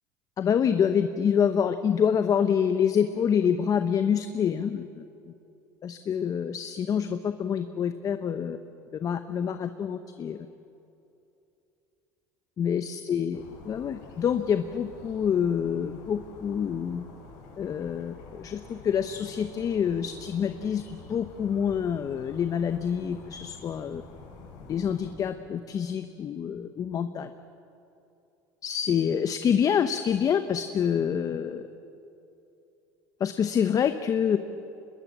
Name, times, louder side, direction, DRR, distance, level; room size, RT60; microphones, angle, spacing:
voice 1, 0.4-5.0 5.8-8.6 9.0-10.5 12.6-17.0 17.6-24.0 24.7-27.3 28.6-31.6 33.2-34.4, left 8 dB, 40° left, 9 dB, 0.9 m, -27 dB
sound 1, 13.3-25.1, left 4 dB, 80° left, 7.9 m, -48 dB
25.0 x 21.0 x 7.5 m, 2.8 s
supercardioid pair, 100°, 9 cm